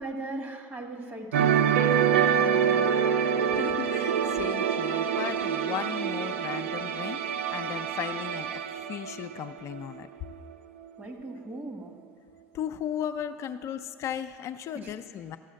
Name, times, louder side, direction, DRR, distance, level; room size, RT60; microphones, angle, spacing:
voice 1, 0.0-2.0 2.3-3.1 11.0-11.9 14.7-14.9, right 2 dB, 35° right, 4 dB, 1.5 m, -39 dB
sound 1, 1.3-10.0 10.3-10.5, right 8 dB, 90° right, 0.5 m, -26 dB
voice 2, 3.5-8.6 8.9-10.1 12.5-15.4, left 9 dB, 50° left, 8 dB, 0.5 m, -36 dB
14.0 x 5.6 x 6.4 m, 2.1 s
hypercardioid pair, 90°, 6 cm